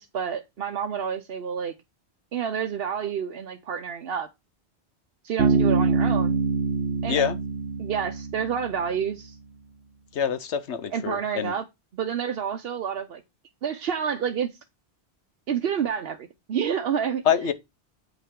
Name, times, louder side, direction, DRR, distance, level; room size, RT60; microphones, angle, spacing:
voice 1, 0.0-1.7 2.3-4.3 5.2-6.4 7.0-7.2 7.8-9.3 10.9-11.6 11.9-13.2 13.6-14.5 15.5-17.2, right 7 dB, 65° right, 0.9 m, -29 dB
Bass guitar, 5.4-9.0, right 4 dB, 90° right, 1.2 m, -24 dB
voice 2, 7.1-7.4 10.1-11.5 17.2-17.5, left 8 dB, 85° left, 1.2 m, -25 dB
8.4 x 5.6 x 3.7 m
omnidirectional pair, 1.1 m